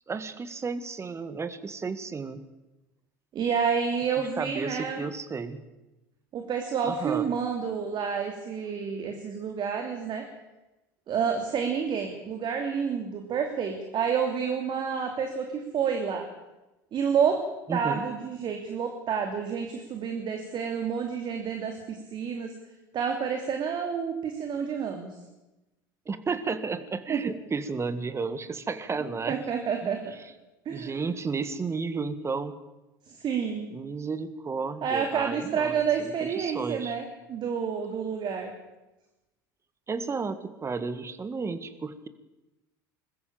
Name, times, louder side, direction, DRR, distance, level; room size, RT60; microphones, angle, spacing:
voice 1, 0.1-2.4 4.4-5.6 6.9-7.3 17.7-18.0 26.1-29.4 29.8-30.0 30.7-32.5 33.7-37.0 39.9-42.1, right 4 dB, 25° right, 12 dB, 1.9 m, -33 dB
voice 2, 3.3-5.0 6.3-10.2 11.1-16.3 16.9-17.4 17.7-22.5 22.9-25.2 27.1-27.2 29.3-30.1 30.6-31.0 33.1-33.7 34.8-37.0 37.3-38.5, right 6 dB, 45° right, 4 dB, 2.9 m, -29 dB
21.5 x 14.0 x 8.8 m, 1.0 s
hypercardioid pair, 75°, 11 cm